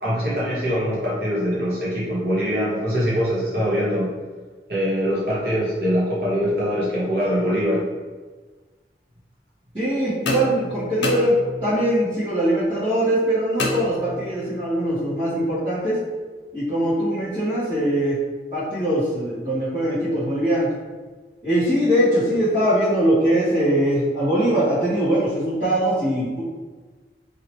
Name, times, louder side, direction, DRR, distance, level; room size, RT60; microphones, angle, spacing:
voice 1, 0.0-4.1 4.7-7.8, equal, 60° right, -8 dB, 1.1 m, -23 dB
voice 2, 9.7-11.3 11.6-16.0 16.5-18.2 18.5-20.7 21.4-26.4, right 1 dB, 30° right, -17 dB, 1.3 m, -21 dB
sound 1, 10.2-11.9 13.6-14.5, left 2 dB, 90° left, 0.6 m, -28 dB
2.9 x 2.8 x 3.0 m, 1.3 s
head